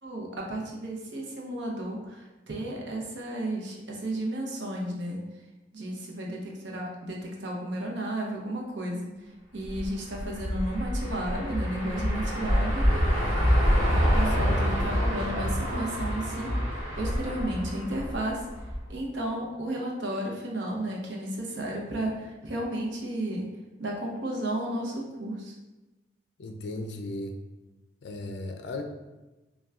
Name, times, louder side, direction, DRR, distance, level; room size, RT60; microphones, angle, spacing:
voice 1, 0.0-5.2 5.7-12.8 14.0-16.5 17.0-18.4 18.9-23.5 23.8-25.5, right 1 dB, 85° right, -1 dB, 0.7 m, -33 dB
sound 1, 9.6-18.9, equal, 30° right, 1.5 m, -26 dB
voice 2, 14.3-14.6 26.4-27.4 28.0-28.8, left 2 dB, 65° left, 5 dB, 0.4 m, -36 dB
5.6 x 2.3 x 2.4 m, 1.1 s
head